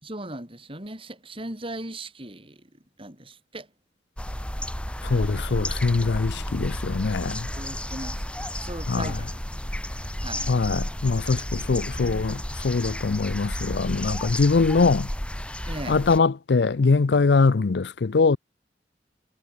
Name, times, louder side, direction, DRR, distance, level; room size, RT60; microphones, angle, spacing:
voice 1, 0.0-2.6 3.0-3.7 5.1-5.3 6.4-6.7 7.6-8.2 8.6-9.4 9.9-10.5 11.7-12.5 14.5-14.9 15.6-16.0, right 1 dB, 30° right, 4.8 m, -39 dB
sound 1, 4.2-16.2, equal, 5° left, 2.7 m, -32 dB
voice 2, 5.0-7.5 8.9-9.1 10.5-15.1 15.9-18.4, left 4 dB, 70° left, 0.6 m, -22 dB
head